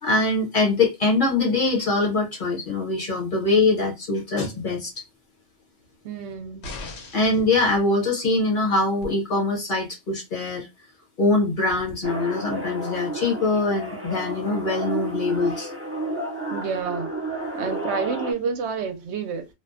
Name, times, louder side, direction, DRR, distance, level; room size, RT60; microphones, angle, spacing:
voice 1, 0.0-4.9 7.1-10.7 11.2-15.7, left 3 dB, 50° left, 1.1 m, -23 dB
voice 2, 6.0-6.7 16.5-17.1 17.5-19.5, right 5 dB, 75° right, 0.9 m, -29 dB
sound 1, 6.6-7.5 9.0-9.1, left 2 dB, 70° left, 1.0 m, -37 dB
sound 2, 12.0-18.3, right 2 dB, 20° right, 0.3 m, -31 dB
2.4 x 2.2 x 2.4 m
omnidirectional pair, 1.2 m